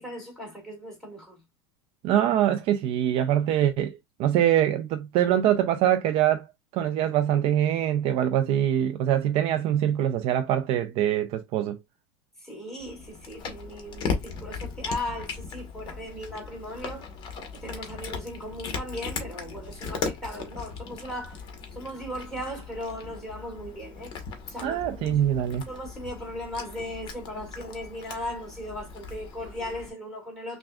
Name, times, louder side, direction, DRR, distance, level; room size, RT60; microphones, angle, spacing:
voice 1, 0.0-1.4 12.4-17.1 17.5-21.4 21.7-24.1 24.5-25.2 25.7-30.6, left 1 dB, 5° left, 2.0 m, -37 dB
voice 2, 2.0-6.4 6.7-11.8 24.6-25.7, right 11 dB, 40° right, 0.4 m, -24 dB
Cat, 12.8-29.9, left 5 dB, 35° left, 1.1 m, -38 dB
5.9 x 2.3 x 2.3 m
supercardioid pair, 150°, 14 cm